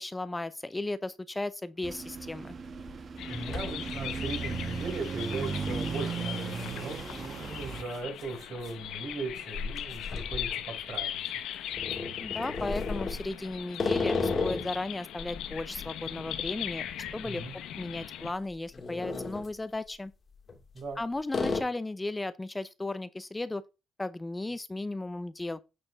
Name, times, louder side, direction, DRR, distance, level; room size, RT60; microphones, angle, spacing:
voice 1, 0.0-2.6 12.2-16.9 17.1-17.4 17.7-20.1 21.0-23.6 24.0-25.6, left 2 dB, 15° left, 0.5 m, -35 dB
sound 1, 1.8-7.8, right 5 dB, 45° right, 1.2 m, -37 dB
sound 2, 1.9-2.0 2.5-2.9 3.2-4.3 4.6-4.7 5.7-5.9 6.5-6.7 7.0-7.1 8.0-11.1 11.7-14.8 15.2-17.5 17.8-18.0 18.5-19.5 20.4-21.0 21.3-21.6, left 4 dB, 40° left, 1.9 m, -34 dB
sound 3, 3.2-18.3, left 11 dB, 85° left, 0.9 m, -39 dB
voice 2, 3.3-11.2 17.2-17.5 20.7-21.0, right 3 dB, 65° right, 4.5 m, -38 dB
8.7 x 4.7 x 4.7 m
cardioid pair, 90°, 0 cm